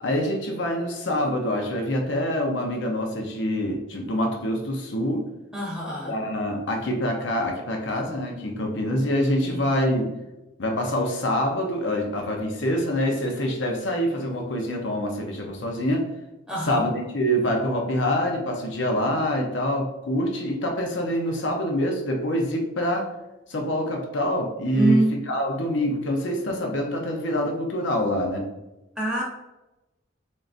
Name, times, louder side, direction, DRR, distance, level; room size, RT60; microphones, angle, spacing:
voice 1, 0.0-5.3 6.0-10.1 10.6-16.1 16.6-23.1 23.5-28.5, equal, 90° left, 2 dB, 0.7 m, -25 dB
voice 2, 5.5-6.2 9.4-9.7 16.5-16.9 24.7-25.1 29.0-29.2, right 2 dB, 5° right, -5 dB, 0.8 m, -24 dB
3.8 x 3.7 x 2.5 m, 1.0 s
head